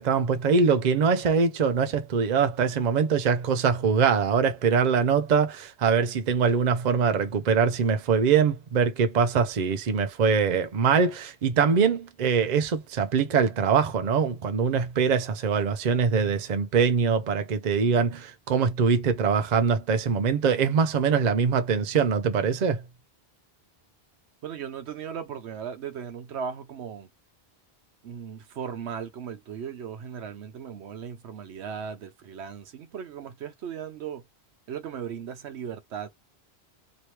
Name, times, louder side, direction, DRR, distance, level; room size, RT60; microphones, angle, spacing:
voice 1, 0.0-22.8, right 6 dB, 50° right, 0.6 m, -23 dB
voice 2, 24.4-27.1 28.0-34.2 34.7-36.1, right 7 dB, 90° right, 1.0 m, -37 dB
2.9 x 2.9 x 3.0 m
omnidirectional pair, 1.1 m